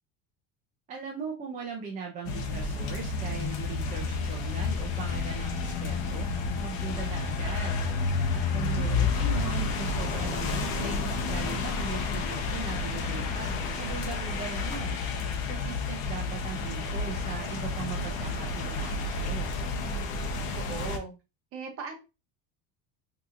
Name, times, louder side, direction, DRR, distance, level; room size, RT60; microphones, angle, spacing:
voice 1, 0.9-6.3 6.6-7.8 8.3-15.0 15.5-19.7, right 5 dB, 20° right, -2 dB, 0.4 m, -39 dB
sound 1, 2.2-21.0, left 4 dB, 60° left, 0.8 m, -30 dB
sound 2, 9.2-14.8, left 3 dB, 45° left, 1.2 m, -45 dB
voice 2, 20.6-21.1 21.5-22.0, right 4 dB, 35° right, 2 dB, 0.8 m, -38 dB
3.8 x 2.8 x 2.4 m, 0.28 s
cardioid pair, 175°, 38 cm